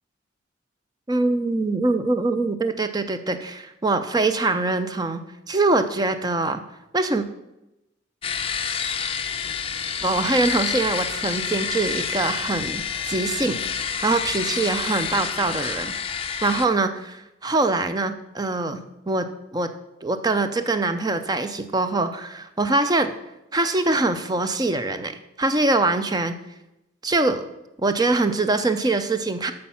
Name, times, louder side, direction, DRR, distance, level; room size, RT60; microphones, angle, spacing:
voice 1, 1.1-5.2 5.5-6.6 6.9-7.3 10.0-15.9 16.4-19.3 19.5-19.7 20.0-23.1 23.5-26.4 27.0-27.4 27.8-29.5, right 2 dB, 20° right, 9 dB, 0.5 m, -23 dB
sound 1, 8.2-16.7, left 7 dB, 30° left, 0.6 m, -28 dB
8.4 x 6.5 x 5.7 m, 0.93 s
head